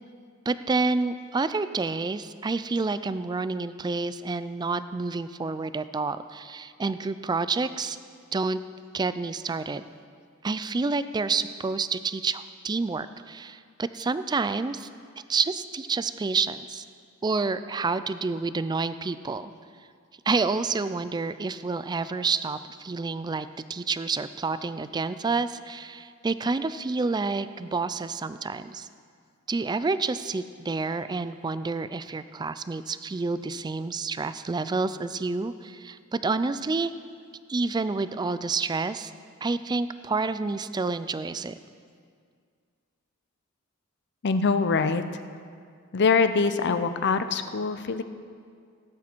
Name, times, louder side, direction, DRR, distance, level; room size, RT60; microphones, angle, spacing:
voice 1, 0.5-8.0 8.3-8.6 8.9-9.8 10.4-14.9 15.3-16.8 17.2-19.5 20.3-28.9 29.5-36.9 37.5-39.1 39.4-41.6, right 4 dB, 20° right, 13 dB, 0.3 m, -29 dB
voice 2, 44.2-45.0 45.9-48.0, left 4 dB, 55° left, 10 dB, 0.6 m, -23 dB
17.0 x 8.6 x 4.5 m, 2.1 s
head